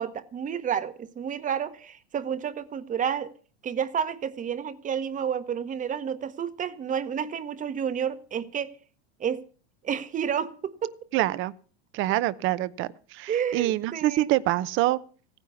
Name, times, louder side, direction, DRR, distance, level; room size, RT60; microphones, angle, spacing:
voice 1, 0.0-3.3 3.6-8.7 9.2-9.4 9.8-10.9 12.1-12.2 13.3-14.3, right 8 dB, 25° right, 1.1 m, -30 dB
voice 2, 11.1-11.5 11.9-15.0, right 16 dB, 40° right, 0.7 m, -26 dB
15.5 x 9.8 x 7.0 m
supercardioid pair, 125°, 32 cm